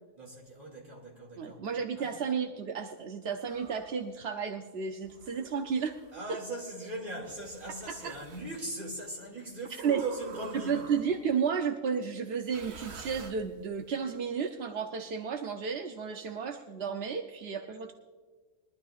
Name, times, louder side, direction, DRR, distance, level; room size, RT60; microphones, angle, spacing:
voice 1, 0.2-1.6 1.9-2.2 6.1-11.0, right 2 dB, 35° right, 2.6 m, -40 dB
voice 2, 1.4-5.9 7.9-8.1 9.8-10.0 10.5-17.9, right 6 dB, 55° right, 0.8 m, -32 dB
sound 1, 3.4-4.1 5.0-6.2 7.2-8.5 9.8-11.3 12.4-13.8, right 5 dB, 80° right, 1.5 m, -50 dB
22.0 x 12.0 x 2.5 m
omnidirectional pair, 1.6 m